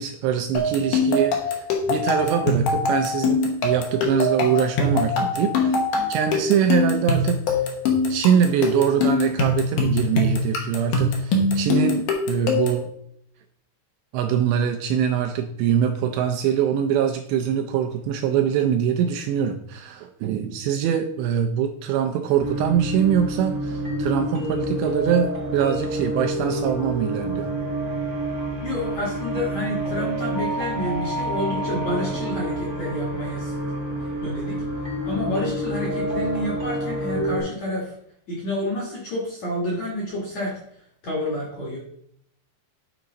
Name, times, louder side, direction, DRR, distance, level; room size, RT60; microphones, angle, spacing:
voice 1, 0.0-5.8 6.1-7.7 8.1-12.9 14.1-27.5, right 8 dB, 80° right, 5 dB, 2.6 m, -23 dB
sound 1, 0.5-12.9, left 3 dB, 70° left, 2.0 m, -23 dB
sound 2, 22.4-37.4, right 1 dB, 25° right, 0.5 m, -28 dB
voice 2, 28.6-33.5 34.2-37.9 38.3-40.5 41.0-41.8, left 1 dB, 55° left, -5 dB, 2.1 m, -29 dB
9.3 x 4.8 x 3.9 m, 0.68 s
omnidirectional pair, 5.4 m